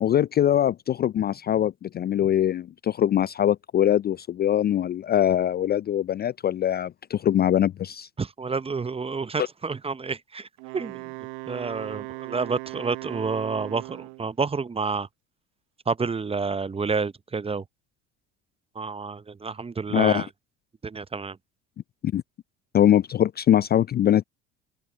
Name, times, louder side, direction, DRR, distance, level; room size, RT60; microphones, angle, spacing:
voice 1, 0.0-8.1 19.9-20.2 22.0-22.2 22.7-24.2, left 10 dB, 25° left, 0.5 m, -22 dB
voice 2, 8.2-10.5 10.7-11.0 11.5-15.1 15.9-17.6 18.8-20.3 20.8-21.4, right 4 dB, 15° right, 0.8 m, -29 dB
Wind instrument woodwind instrument, 10.6-14.3, right 34 dB, 60° right, 1.0 m, -38 dB
open air
figure-of-eight pair, 65°, 37 cm